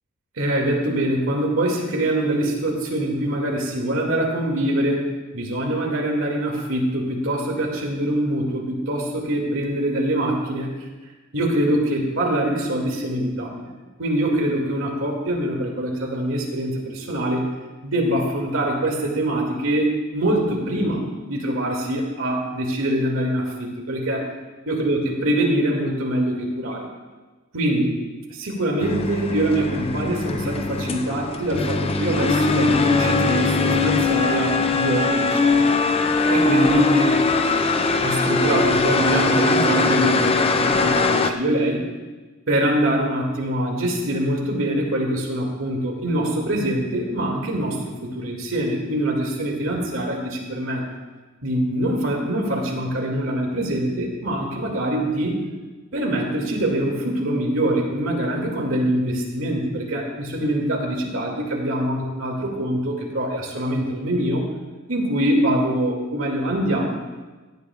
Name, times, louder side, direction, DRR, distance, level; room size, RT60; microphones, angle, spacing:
voice 1, 0.4-10.7 11.3-13.7 14.0-17.5 17.8-24.3 24.7-26.9 27.5-27.9 28.3-35.7 36.3-37.2 38.0-41.8 42.5-50.8 51.4-55.4 55.9-64.4 64.9-66.8, right 1 dB, 70° right, 0 dB, 2.4 m, -24 dB
sound 1, 28.8-41.3, left 3 dB, 30° left, 0.5 m, -21 dB
17.0 x 11.5 x 2.4 m, 1.3 s
head